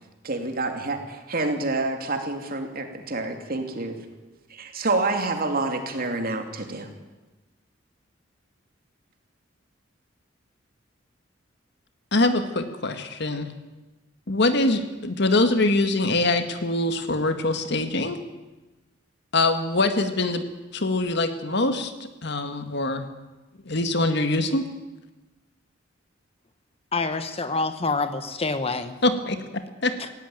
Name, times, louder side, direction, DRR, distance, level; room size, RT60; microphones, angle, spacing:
voice 1, 0.2-4.0 4.5-6.9, right 2 dB, 50° right, 4 dB, 2.8 m, -28 dB
voice 2, 12.1-13.5 14.3-18.2 19.3-20.5 20.7-21.9 22.2-23.1 23.6-24.6 29.0-30.0, left 2 dB, 60° left, 8 dB, 1.9 m, -23 dB
voice 3, 26.9-29.0 30.0-30.1, left 3 dB, 30° left, 10 dB, 1.1 m, -27 dB
18.5 x 16.5 x 9.2 m, 1.1 s
head